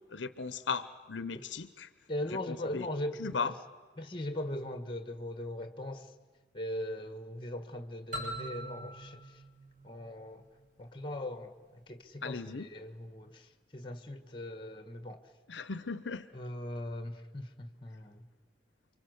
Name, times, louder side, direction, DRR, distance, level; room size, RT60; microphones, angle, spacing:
voice 1, 0.1-1.9 2.5-2.9 3.2-3.5 12.2-12.7 15.5-16.3, left 5 dB, 75° left, 0.9 m, -37 dB
voice 2, 2.1-3.5 4.0-6.1 6.5-9.4 9.8-10.4 10.8-15.2 16.3-18.2, left 1 dB, 25° left, 1.6 m, -40 dB
sound 1, 8.1-10.8, right 1 dB, 45° right, 5.9 m, -43 dB
29.0 x 24.5 x 8.0 m
head